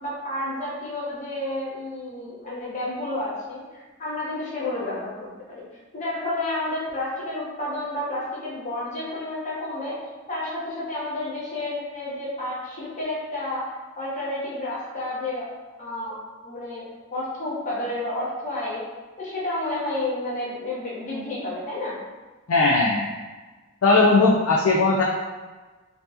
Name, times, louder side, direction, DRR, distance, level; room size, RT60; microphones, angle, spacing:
voice 1, 0.0-5.6 5.9-10.0 10.3-15.5 15.8-16.2 16.4-18.8 19.2-22.0, left 1 dB, 35° left, -8 dB, 1.0 m, -30 dB
voice 2, 22.5-23.1 23.8-25.0, left 3 dB, 75° left, -2 dB, 0.4 m, -18 dB
4.4 x 2.8 x 2.5 m, 1.3 s
head